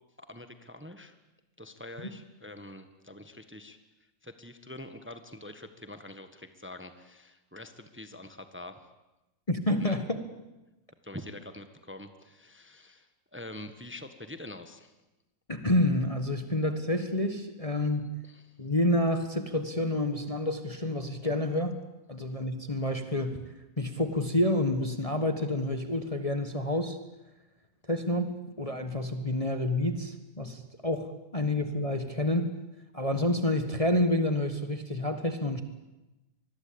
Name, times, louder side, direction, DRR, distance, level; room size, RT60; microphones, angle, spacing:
voice 1, 0.2-1.2 1.6-3.8 4.2-8.8 9.8-10.0 11.0-15.0 17.8-17.9 18.2-18.6, left 1 dB, 5° right, 9 dB, 1.3 m, -45 dB
voice 2, 9.5-10.2 15.5-18.1 18.6-21.8 22.1-23.4 23.8-27.0 27.9-32.5 32.9-35.6, left 1 dB, 20° left, 8 dB, 1.4 m, -28 dB
25.5 x 21.0 x 8.7 m, 1.0 s
omnidirectional pair, 1.9 m